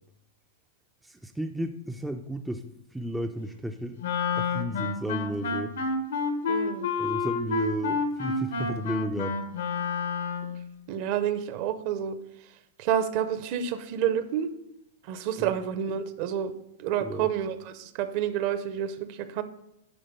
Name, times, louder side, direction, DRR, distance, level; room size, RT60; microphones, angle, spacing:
voice 1, 1.0-2.6 2.9-4.0 4.4-5.8 7.0-9.4 15.4-15.5 17.0-17.3, right 1 dB, 5° right, 5 dB, 0.4 m, -33 dB
Wind instrument woodwind instrument, 4.0-10.6, left 4 dB, 75° left, 1.0 m, -29 dB
voice 2, 6.5-6.9 10.9-12.2 12.8-14.5 15.1-16.5 16.8-19.4, right 9 dB, 45° right, 11 dB, 0.7 m, -29 dB
10.5 x 3.9 x 5.3 m, 0.84 s
hypercardioid pair, 145°, 0 cm